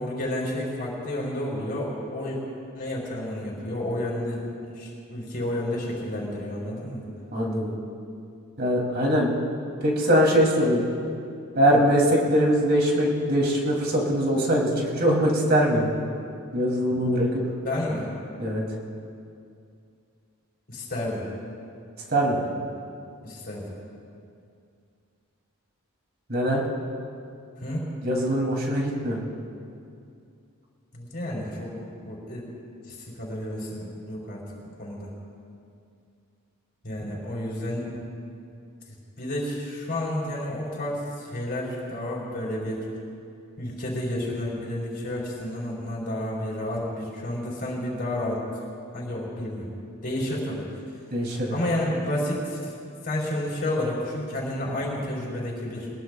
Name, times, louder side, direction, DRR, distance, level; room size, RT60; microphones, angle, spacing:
voice 1, 0.0-2.4 2.8-4.4 4.8-7.0 11.6-11.8 16.9-17.1 17.6-18.1 20.7-21.3 23.2-23.7 27.6-27.9 30.9-31.7 32.0-32.4 32.9-34.4 34.8-35.1 36.8-38.0 39.2-42.8 43.6-48.4 48.9-49.7 50.0-50.7 51.5-52.7 53.0-55.9, left 1 dB, 45° left, -4 dB, 3.8 m, -30 dB
voice 2, 7.3-7.7 8.6-9.3 9.8-10.8 11.6-15.9 16.5-17.4 18.4-18.6 22.1-22.5 26.3-26.6 28.0-29.2 51.1-51.6, equal, 50° right, -2 dB, 3.0 m, -22 dB
23.0 x 21.0 x 2.4 m, 2.4 s
head